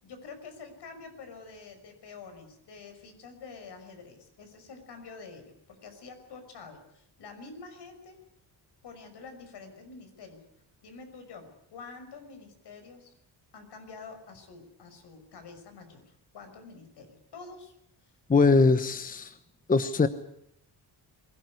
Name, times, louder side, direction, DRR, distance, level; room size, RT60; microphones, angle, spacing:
voice 1, 0.0-8.2 8.8-10.5 10.8-13.1 13.5-16.0 16.3-17.7 18.0-18.1 18.4-18.6, left 4 dB, 70° left, 6 dB, 5.8 m, -47 dB
voice 2, 18.3-19.3 19.7-20.1, left 4 dB, 20° left, 11 dB, 1.0 m, -22 dB
23.0 x 17.5 x 9.7 m, 0.74 s
cardioid pair, 145°, 42 cm